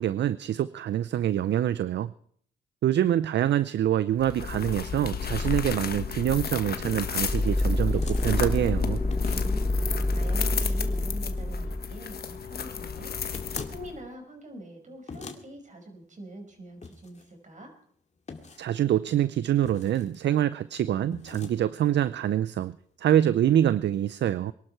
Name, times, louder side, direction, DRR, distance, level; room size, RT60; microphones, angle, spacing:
voice 1, 0.0-2.1 2.8-9.0 18.6-24.5, right 11 dB, 65° right, 16 dB, 0.5 m, -25 dB
sound 1, 4.2-14.1, left 6 dB, 50° left, 1.4 m, -33 dB
sound 2, 5.2-5.5 6.3-6.7 7.9-8.3 9.1-9.6 13.3-13.8 15.1-15.4 16.8-17.3 18.3-18.7 19.6-20.2 21.1-21.6, left 4 dB, 35° left, 2.2 m, -43 dB
sound 3, 7.2-12.1, left 1 dB, 5° left, 0.7 m, -27 dB
voice 2, 9.3-13.1 13.7-17.7, right 1 dB, 40° right, 4 dB, 5.6 m, -44 dB
23.0 x 12.0 x 4.5 m, 0.62 s
cardioid pair, 70°, 20 cm